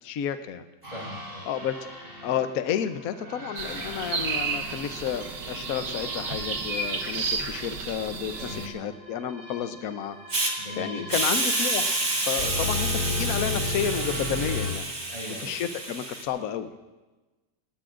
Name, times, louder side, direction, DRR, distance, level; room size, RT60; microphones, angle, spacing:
voice 1, 0.0-0.6 1.5-1.9 2.2-14.9 15.4-16.8, left 9 dB, 65° left, 9 dB, 1.1 m, -31 dB
voice 2, 0.8-1.4 8.4-8.8 10.6-11.2 15.1-15.6, equal, 20° left, -3 dB, 5.6 m, -39 dB
sound 1, 0.8-14.7, left 2 dB, 60° right, 4.1 m, -36 dB
sound 2, 3.6-8.7, right 4 dB, 90° right, 1.8 m, -32 dB
Hiss, 10.3-10.5 11.1-16.2, right 2 dB, 40° right, 2.1 m, -29 dB
20.5 x 19.5 x 2.5 m, 1.2 s
omnidirectional pair, 1.8 m